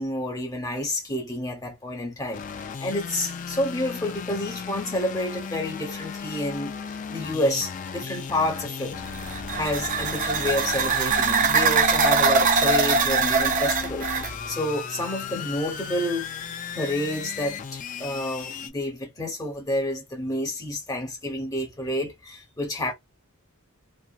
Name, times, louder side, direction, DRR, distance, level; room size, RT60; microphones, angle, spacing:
voice 1, 0.0-9.0 9.5-16.3 16.7-22.9, left 1 dB, 15° left, 0.9 m, -29 dB
sound 1, 2.3-18.7, left 6 dB, 35° left, 0.3 m, -36 dB
sound 2, 9.1-14.3, right 4 dB, 35° right, 0.4 m, -22 dB
2.7 x 2.4 x 2.3 m
head